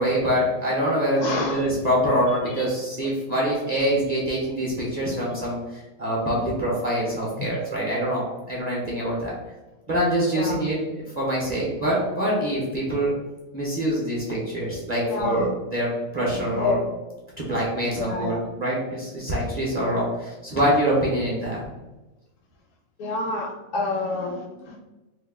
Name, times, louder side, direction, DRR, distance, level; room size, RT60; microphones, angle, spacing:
voice 1, 0.0-8.2 8.5-9.3 9.9-13.1 13.5-16.8 17.4-21.7, equal, 40° right, -5 dB, 0.6 m, -25 dB
voice 2, 1.2-1.7 2.5-2.7 7.3-7.5 10.3-10.6 15.1-15.5 16.5-16.8 18.0-18.5 23.0-24.8, left 3 dB, 70° left, 2 dB, 0.9 m, -28 dB
3.0 x 2.2 x 3.4 m, 1.1 s
omnidirectional pair, 1.5 m